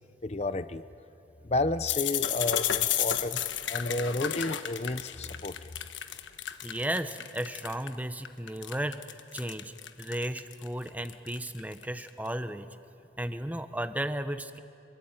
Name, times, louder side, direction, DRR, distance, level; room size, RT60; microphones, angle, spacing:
voice 1, 0.2-0.8 1.4-3.4 3.7-5.7, left 2 dB, 35° left, 13 dB, 0.7 m, -31 dB
sound 1, 1.9-7.9 8.2-12.1, left 10 dB, 80° left, 1.3 m, -32 dB
voice 2, 6.6-12.7 13.2-14.6, right 1 dB, 10° right, 10 dB, 0.9 m, -34 dB
27.0 x 23.5 x 9.0 m, 2.7 s
head